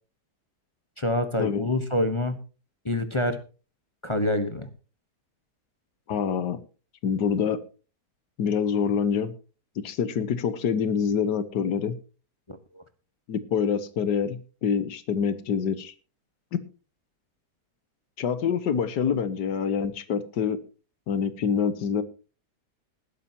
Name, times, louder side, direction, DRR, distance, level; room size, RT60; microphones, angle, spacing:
voice 1, 1.0-2.4 2.8-3.4 4.0-4.7 12.5-12.8, left 1 dB, 20° left, 8 dB, 1.0 m, -26 dB
voice 2, 6.1-6.6 7.0-7.6 8.4-9.3 9.8-12.0 13.3-15.9 18.2-20.6 21.1-22.0, left 7 dB, 80° left, 13 dB, 1.7 m, -26 dB
19.5 x 11.5 x 2.9 m, 0.35 s
omnidirectional pair, 1.8 m